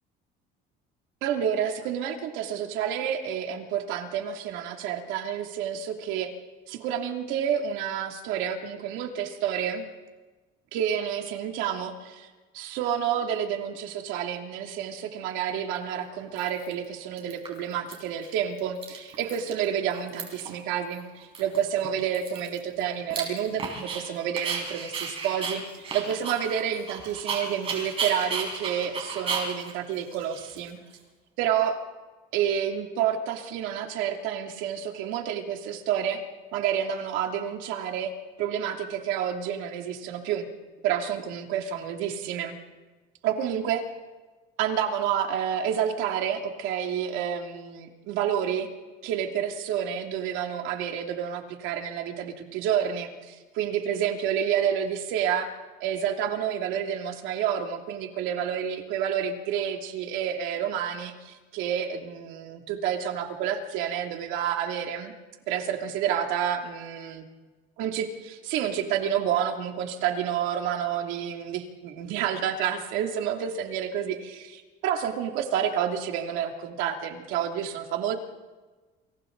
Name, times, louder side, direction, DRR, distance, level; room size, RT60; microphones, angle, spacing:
voice 1, 1.2-6.3 6.7-9.9 10.7-12.3 12.5-30.8 31.4-31.8 32.3-36.2 36.5-38.1 38.4-40.5 40.8-42.6 43.2-43.8 44.6-48.7 49.0-55.5 55.8-65.1 65.5-67.2 67.8-78.2, right 9 dB, 85° right, 3 dB, 2.8 m, -29 dB
Dog, 15.6-15.7 16.4-16.8 17.2-17.9 18.2-18.3 18.6-19.6 19.9-20.6 20.9-21.0 21.3-24.0 24.4-31.0, right 5 dB, 30° right, 5.7 m, -34 dB
29.0 x 28.0 x 4.0 m, 1.3 s
cardioid pair, 175°, 20 cm